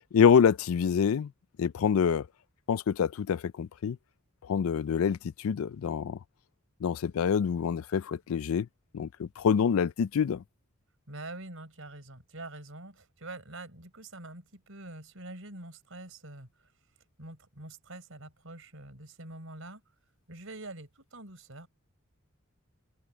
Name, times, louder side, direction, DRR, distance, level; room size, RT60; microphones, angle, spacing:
voice 1, 0.1-1.3 1.6-2.3 2.7-4.0 4.4-6.2 6.8-8.7 8.9-10.4, left 7 dB, 75° left, 0.4 m, -26 dB
voice 2, 11.1-16.5 17.2-19.8 20.3-21.7, right 2 dB, 65° right, 5.1 m, -45 dB
head